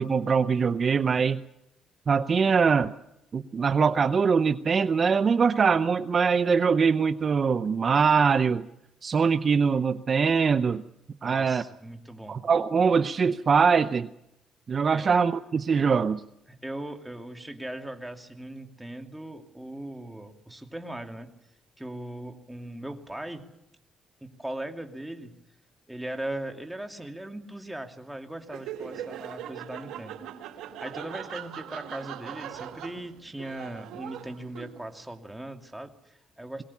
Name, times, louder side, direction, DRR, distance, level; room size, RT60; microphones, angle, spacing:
voice 1, 0.0-1.4 2.1-2.9 3.3-8.7 9.0-10.8 11.2-11.6 12.3-14.1 14.7-16.2, right 5 dB, 45° right, 11 dB, 0.7 m, -23 dB
voice 2, 11.2-12.4 14.9-15.1 16.5-21.3 21.8-23.4 24.2-25.3 25.9-30.2 30.8-36.6, right 1 dB, 5° right, 4 dB, 2.6 m, -39 dB
Laughter, 28.4-35.0, right 10 dB, 85° right, 1.9 m, -40 dB
22.5 x 18.0 x 8.5 m, 0.85 s
cardioid pair, 90°, 0 cm